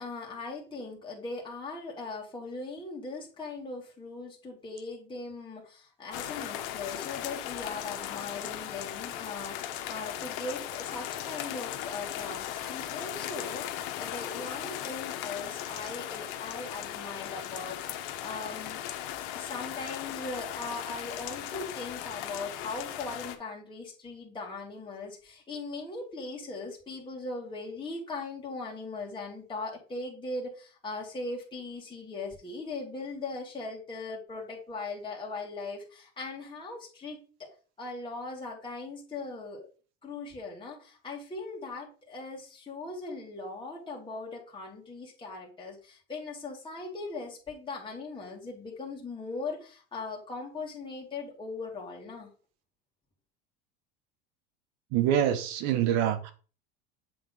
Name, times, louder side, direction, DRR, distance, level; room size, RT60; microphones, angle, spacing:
voice 1, 0.0-9.6 9.9-17.8 18.2-18.8 19.3-37.5 37.8-39.7 40.0-52.3, left 3 dB, 15° left, 2.2 m, -39 dB
sound 1, 6.1-23.4, left 11 dB, 75° left, 1.0 m, -37 dB
voice 2, 54.9-56.3, right 10 dB, 65° right, 1.3 m, -25 dB
7.7 x 3.7 x 3.9 m
supercardioid pair, 105°, 29 cm